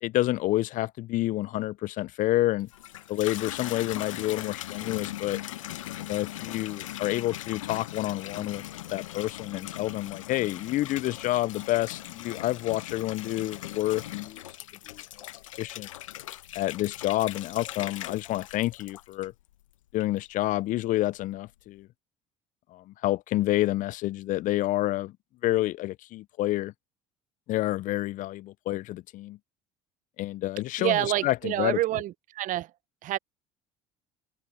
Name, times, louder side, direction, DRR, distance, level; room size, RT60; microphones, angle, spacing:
voice 1, 0.0-2.7 3.1-5.4 6.0-8.6 8.9-14.4 14.9-15.0 15.6-15.9 16.5-19.3 19.9-21.9 22.7-25.1 25.4-26.7 27.5-29.4 30.2-31.0 31.2-31.8, left 16 dB, 55° left, 0.6 m, -28 dB
Water tap faucet / Bathtub (filling or washing), 2.6-19.5 20.0-20.6, left 13 dB, 85° left, 1.3 m, -40 dB
voice 2, 30.8-32.7 33.0-33.2, right 15 dB, 55° right, 1.0 m, -27 dB
hypercardioid pair, 65°, 16 cm